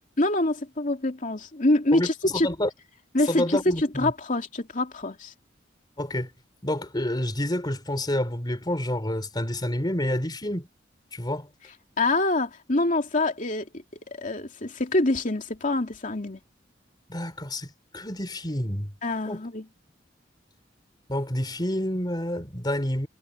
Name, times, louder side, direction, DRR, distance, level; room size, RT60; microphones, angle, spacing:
voice 1, 0.2-2.5 3.1-5.3 12.0-16.4 19.0-19.7, left 2 dB, 45° left, 2.8 m, -25 dB
voice 2, 1.9-2.7 3.3-4.1 6.0-6.3 6.6-10.7 11.1-11.5 17.1-18.9 19.3-19.4 21.1-23.1, left 1 dB, 25° left, 3.3 m, -28 dB
head